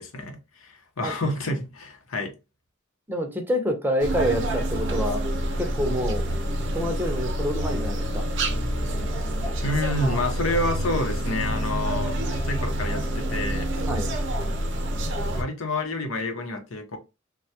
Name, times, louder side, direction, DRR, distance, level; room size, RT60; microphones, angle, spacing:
voice 1, 0.0-2.3 9.6-13.7 15.3-17.0, left 1 dB, 90° left, 0.8 m, -29 dB
voice 2, 3.1-5.2 5.6-6.2 6.7-8.3 13.9-14.1, equal, 10° right, 0.6 m, -27 dB
sound 1, 4.0-15.4, equal, 60° right, 0.7 m, -27 dB
3.2 x 2.2 x 2.7 m
head